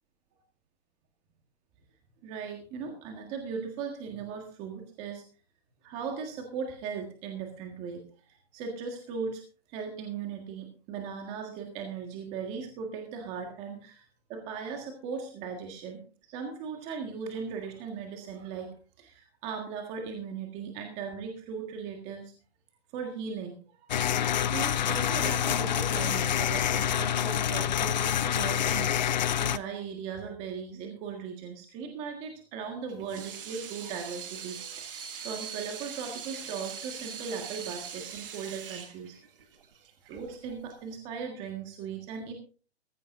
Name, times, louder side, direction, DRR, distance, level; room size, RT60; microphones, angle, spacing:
voice 1, 2.2-5.2 5.8-9.4 9.7-22.3 22.9-23.9 24.5-29.1 29.4-39.2 40.0-42.3, right 6 dB, 20° right, 3 dB, 1.7 m, -38 dB
sound 1, 23.9-29.6, left 10 dB, 45° left, 0.6 m, -27 dB
Water tap faucet / Sink (filling or washing), 32.9-40.9, right 7 dB, 55° right, 2.0 m, -42 dB
15.5 x 15.5 x 2.6 m, 0.37 s
hypercardioid pair, 165°, 33 cm